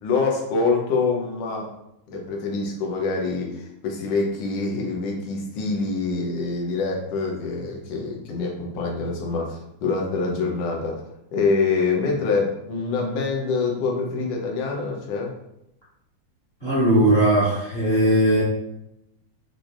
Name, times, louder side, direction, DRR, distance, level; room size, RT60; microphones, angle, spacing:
voice 1, 0.0-1.7 2.1-11.0 11.3-15.3, left 4 dB, 65° left, 0 dB, 1.7 m, -25 dB
voice 2, 16.6-18.4, right 1 dB, 25° left, -8 dB, 1.4 m, -18 dB
6.1 x 3.4 x 2.5 m, 0.82 s
omnidirectional pair, 3.6 m